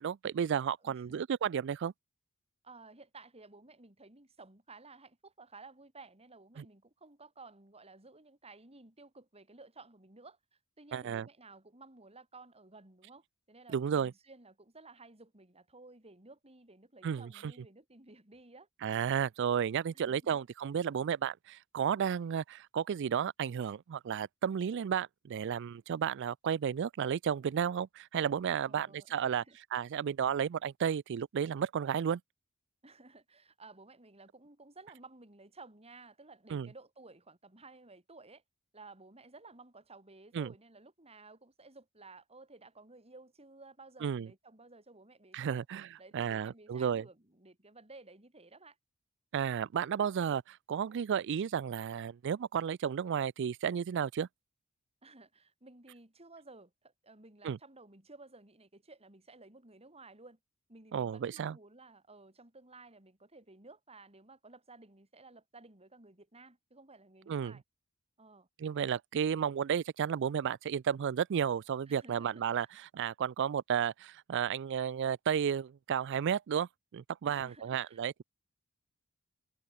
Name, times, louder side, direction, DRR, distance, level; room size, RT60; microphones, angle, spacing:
voice 1, 0.0-1.9 6.6-6.7 10.9-11.3 13.7-14.1 17.0-17.5 18.8-29.4 29.7-32.2 36.5-36.7 40.3-40.5 44.0-44.3 45.3-47.0 49.3-54.3 57.4-57.6 60.9-61.6 67.3-67.6 68.6-72.7 72.9-78.2, right 8 dB, 55° right, 0.3 m, -33 dB
voice 2, 0.8-1.2 2.6-10.4 10.8-18.7 19.9-20.4 28.6-29.6 32.8-38.4 38.7-45.7 46.0-48.8 55.0-60.4 60.7-67.6 68.2-68.5 71.9-72.7 77.3-78.0, right 3 dB, 30° right, 4.4 m, -55 dB
head